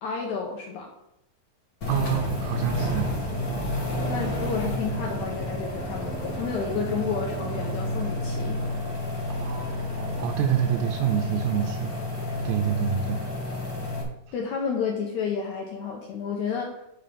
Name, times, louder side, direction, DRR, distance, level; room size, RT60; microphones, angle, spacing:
voice 1, 0.0-0.9 4.1-8.6 14.3-16.8, left 6 dB, 75° left, 1 dB, 1.8 m, -31 dB
sound 1, 1.8-14.0, left 1 dB, 60° left, 0.9 m, -30 dB
voice 2, 1.9-3.1 9.3-11.9 12.4-13.2, right 9 dB, 80° right, 3 dB, 2.5 m, -27 dB
6.9 x 5.5 x 5.2 m, 0.87 s
omnidirectional pair, 4.3 m